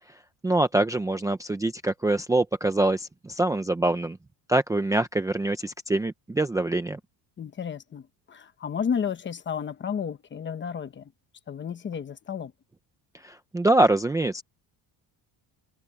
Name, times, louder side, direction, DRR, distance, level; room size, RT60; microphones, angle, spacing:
voice 1, 0.4-4.2 4.5-7.0 13.2-14.4, right 2 dB, 5° right, 0.6 m, -24 dB
voice 2, 7.4-11.1 11.5-12.5, left 7 dB, 25° left, 1.0 m, -32 dB
cardioid pair, 180°, 45 cm